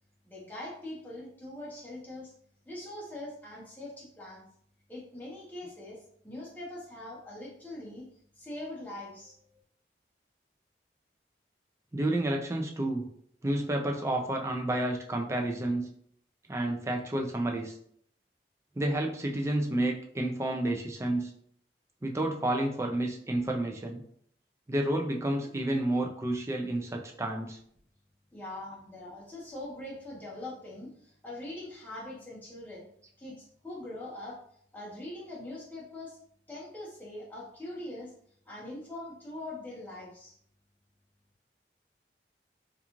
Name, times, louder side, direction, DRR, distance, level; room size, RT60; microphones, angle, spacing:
voice 1, 0.2-2.3 2.6-4.5 4.9-8.1 8.4-9.6 28.3-32.9 33.2-34.4 34.7-36.2 36.5-38.1 38.5-40.3, left 1 dB, 10° left, -6 dB, 0.8 m, -42 dB
voice 2, 11.9-13.1 13.4-15.9 16.5-17.8 18.8-21.3 22.0-24.0 24.7-27.6, right 1 dB, 15° right, 2 dB, 0.3 m, -30 dB
2.4 x 2.3 x 2.9 m, 0.64 s
head